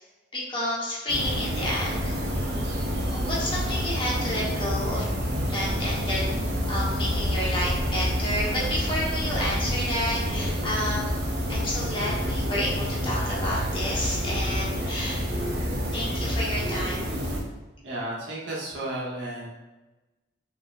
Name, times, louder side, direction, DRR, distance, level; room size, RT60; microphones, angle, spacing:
voice 1, 0.3-2.2 3.1-5.1 5.5-6.2 6.7-11.2 11.5-15.2 15.9-17.1, left 1 dB, 25° left, -5 dB, 1.0 m, -30 dB
sound 1, 1.1-17.4, equal, 55° right, 0.8 m, -28 dB
voice 2, 17.8-19.5, right 1 dB, 75° right, -6 dB, 1.3 m, -33 dB
5.3 x 3.1 x 2.4 m, 1.1 s
head